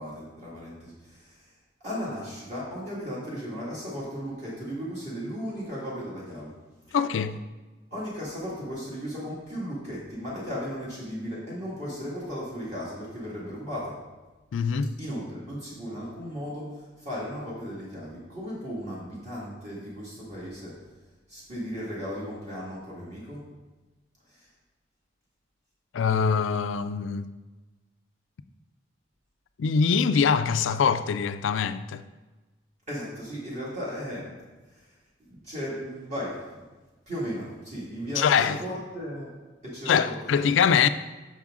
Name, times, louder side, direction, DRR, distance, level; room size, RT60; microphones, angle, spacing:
voice 1, 0.0-1.5 1.8-6.6 6.9-7.0 7.9-14.0 15.0-20.8 21.3-23.4 24.2-24.5 32.9-34.4 34.7-35.0 35.3-36.6 37.1-39.3 39.6-40.4, equal, 40° right, 1.8 m, -36 dB
voice 2, 6.9-7.4 14.5-14.9 25.9-27.3 29.6-32.0 38.2-38.6 39.9-40.9, left 6 dB, 85° left, 0.4 m, -23 dB
7.2 x 6.1 x 3.6 m
head